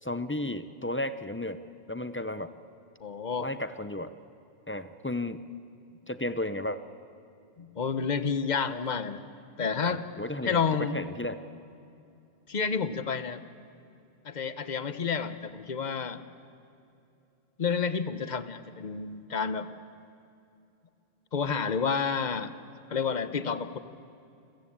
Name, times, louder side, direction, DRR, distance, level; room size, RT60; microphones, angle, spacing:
voice 1, 0.0-1.6 1.9-2.5 3.4-4.1 4.7-5.4 6.1-6.8 9.8-11.4, left 1 dB, 15° left, 12 dB, 0.4 m, -33 dB
voice 2, 3.0-3.5 7.6-9.2 9.6-10.0 10.4-11.0 12.5-13.4 14.2-16.2 17.6-19.7 21.3-22.5 22.9-23.8, left 6 dB, 45° left, 12 dB, 0.9 m, -30 dB
29.5 x 14.5 x 8.6 m, 2.7 s
omnidirectional pair, 1.2 m